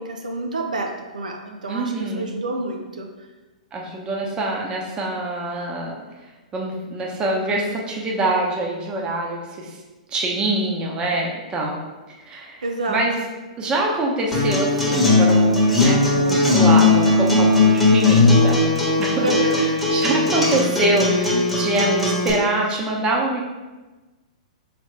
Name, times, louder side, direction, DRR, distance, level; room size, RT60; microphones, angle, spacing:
voice 1, 0.0-3.1 12.6-13.0 19.2-19.9, right 2 dB, 85° right, 2 dB, 0.5 m, -28 dB
voice 2, 1.7-2.3 3.7-5.9 6.5-9.8 10.1-11.8 12.2-13.2 13.6-18.6 19.0-19.3 19.9-23.4, right 2 dB, 20° right, -1 dB, 0.8 m, -25 dB
Acoustic guitar, 14.3-22.3, left 2 dB, ahead, 1.1 m, -17 dB
3.6 x 3.3 x 3.2 m, 1.2 s
hypercardioid pair, 120°, 4 cm